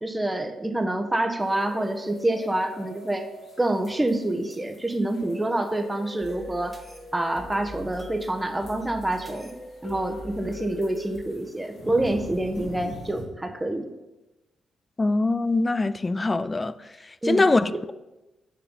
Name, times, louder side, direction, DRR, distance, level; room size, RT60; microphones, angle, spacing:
voice 1, 0.0-3.3 3.6-6.7 7.1-9.5 9.8-13.9 17.2-17.5, right 1 dB, 15° right, 1.1 m, -27 dB
sound 1, 1.4-13.2, equal, 60° left, 2.5 m, -42 dB
sound 2, 6.2-11.2, left 2 dB, ahead, 1.5 m, -45 dB
voice 2, 15.0-16.7 17.0-17.9, left 2 dB, 30° left, 0.4 m, -23 dB
7.2 x 4.9 x 5.3 m
hypercardioid pair, 45°, 0 cm